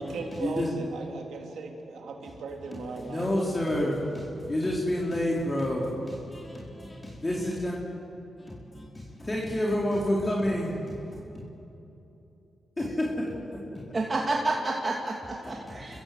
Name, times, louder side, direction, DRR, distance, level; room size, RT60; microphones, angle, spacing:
voice 1, 0.0-3.3, right 4 dB, 80° right, 2 dB, 3.1 m, -37 dB
voice 2, 3.0-7.8 8.5-11.2 12.8-13.2 13.5-13.8 15.4-16.0, left 1 dB, 25° left, -4 dB, 4.5 m, -29 dB
voice 3, 13.9-16.0, right 2 dB, 40° right, -1 dB, 2.7 m, -29 dB
28.5 x 15.0 x 8.0 m, 2.9 s
cardioid pair, 55°, 0 cm